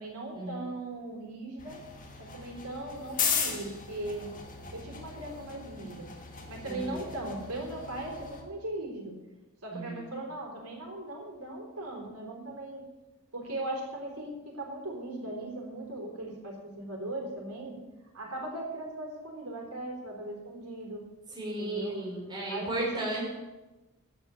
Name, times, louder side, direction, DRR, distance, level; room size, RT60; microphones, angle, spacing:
voice 1, 0.0-1.8 2.2-4.3 4.7-6.1 6.5-9.1 9.6-12.9 13.3-17.8 18.1-21.1 21.6-22.0 22.5-23.1, right 1 dB, 85° right, 0 dB, 3.7 m, -38 dB
sound 1, 1.6-8.4, left 6 dB, 40° left, 1.7 m, -37 dB
voice 2, 6.6-7.0 9.7-10.1 21.4-23.2, right 2 dB, 20° right, -4 dB, 4.0 m, -34 dB
10.5 x 9.1 x 7.0 m, 1.1 s
head